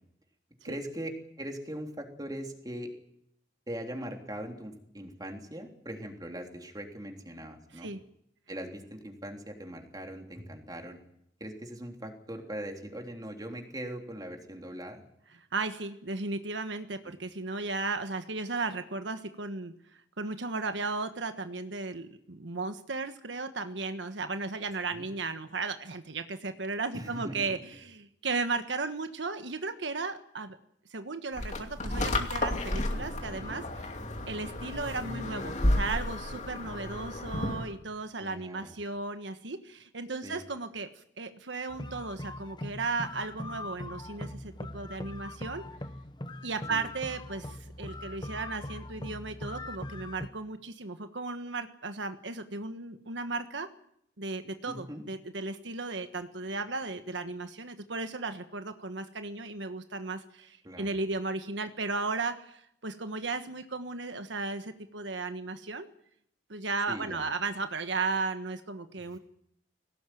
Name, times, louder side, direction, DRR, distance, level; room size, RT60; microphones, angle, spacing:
voice 1, 0.6-1.1 1.4-2.9 3.7-7.9 8.5-11.0 11.4-15.0 24.9-25.1 26.9-27.6 33.3-33.6 38.2-38.8 40.2-40.4 46.7-46.8 54.7-55.0 60.6-60.9 66.9-67.3 69.1-69.2, right 1 dB, 20° right, 3 dB, 3.4 m, -40 dB
voice 2, 15.5-19.7 20.2-30.6 30.9-33.8 34.3-45.6 46.4-53.7 54.2-65.9 66.5-69.2, right 3 dB, 85° right, 8 dB, 1.4 m, -35 dB
sound 1, 31.4-37.7, left 1 dB, 40° left, 2.5 m, -32 dB
sound 2, 41.7-50.3, left 1 dB, 25° left, 1.1 m, -41 dB
21.5 x 18.0 x 9.2 m, 0.74 s
head